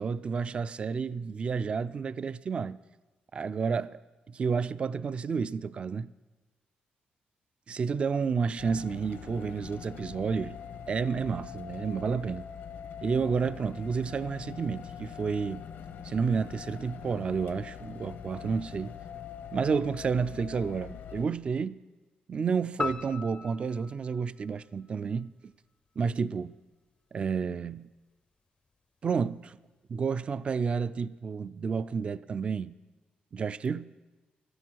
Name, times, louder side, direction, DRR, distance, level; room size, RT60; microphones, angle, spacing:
voice 1, 0.0-2.8 3.3-4.0 4.3-6.1 7.7-10.6 10.9-12.5 13.0-15.6 16.0-18.9 19.5-21.8 22.3-25.5 26.0-26.6 27.1-27.9 29.0-29.6 29.9-32.8 33.3-33.9, right 5 dB, 35° right, 0.3 m, -30 dB
sound 1, 8.6-21.3, left 8 dB, 90° left, 1.0 m, -43 dB
sound 2, 22.8-25.3, left 4 dB, 30° left, 0.4 m, -38 dB
14.5 x 13.0 x 4.6 m
cardioid pair, 140°, 3 cm